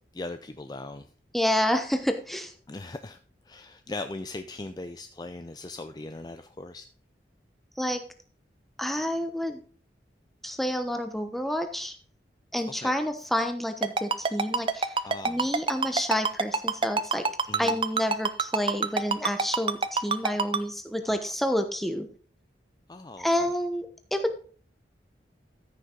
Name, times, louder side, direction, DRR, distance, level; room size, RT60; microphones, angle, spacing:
voice 1, 0.1-1.1 2.7-6.9 12.8-13.0 15.0-15.5 17.5-17.8 21.0-21.3 22.9-23.5, left 2 dB, 20° left, 9 dB, 0.4 m, -39 dB
voice 2, 1.3-2.5 7.8-8.0 8.8-9.6 10.4-12.0 12.5-17.2 17.6-22.1 23.2-23.9 24.1-24.4, equal, ahead, 6 dB, 1.0 m, -29 dB
Ringtone, 13.8-20.6, right 4 dB, 30° right, 0.5 m, -25 dB
14.0 x 6.5 x 3.8 m, 0.43 s
head